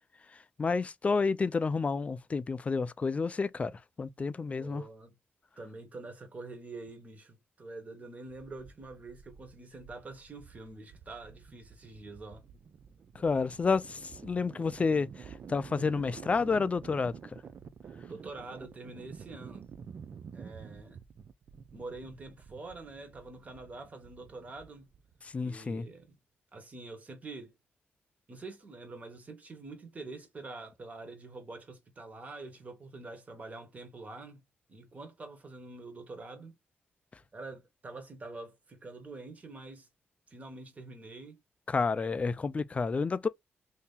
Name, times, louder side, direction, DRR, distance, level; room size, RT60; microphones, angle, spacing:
voice 1, 0.6-3.7 4.0-4.8 13.2-17.1 25.2-25.9 41.7-43.3, left 4 dB, 30° left, 0.4 m, -30 dB
voice 2, 4.6-5.2 5.6-12.4 18.0-19.6 20.3-21.0 21.7-24.9 25.4-26.1 26.5-27.6 28.3-34.4 34.7-36.5 37.3-39.9 40.3-41.4, right 3 dB, 35° right, 1.3 m, -46 dB
sound 1, 8.3-25.3, right 6 dB, 55° right, 0.4 m, -50 dB
2.8 x 2.8 x 3.6 m
cardioid pair, 95°, 4 cm